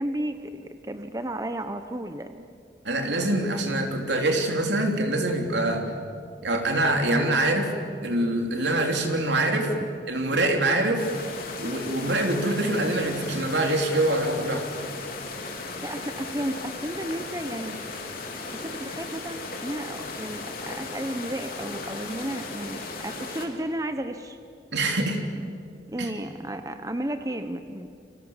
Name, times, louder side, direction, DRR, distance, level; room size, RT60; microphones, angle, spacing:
voice 1, 0.0-2.5 9.8-9.9 15.8-17.8 18.5-24.4 25.4-25.5 25.9-27.9, right 1 dB, 20° right, 8 dB, 0.9 m, -33 dB
voice 2, 2.8-5.8 6.4-7.7 8.0-9.7 10.1-11.0 11.6-14.7 24.7-25.2 26.0-26.1, right 1 dB, 75° right, 3 dB, 3.5 m, -24 dB
sound 1, 11.0-23.5, left 3 dB, 50° left, 3.6 m, -36 dB
30.0 x 24.5 x 7.4 m, 2.2 s
head